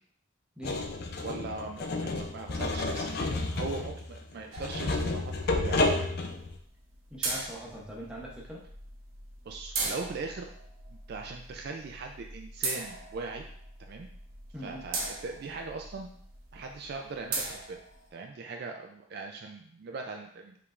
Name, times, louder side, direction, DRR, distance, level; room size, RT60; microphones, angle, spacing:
sound 1, 0.6-6.6, left 2 dB, 50° left, 0.4 m, -31 dB
voice 1, 1.2-5.8 9.5-10.5 11.1-13.5 13.8-14.1 14.6-16.1 16.5-17.8 18.1-20.6, right 4 dB, 50° right, 3 dB, 0.3 m, -40 dB
sound 2, 4.5-18.1, right 3 dB, 70° right, 0.9 m, -40 dB
voice 2, 7.1-8.6 14.5-14.9, equal, 5° right, -5 dB, 0.8 m, -41 dB
4.8 x 3.3 x 2.4 m, 0.63 s
head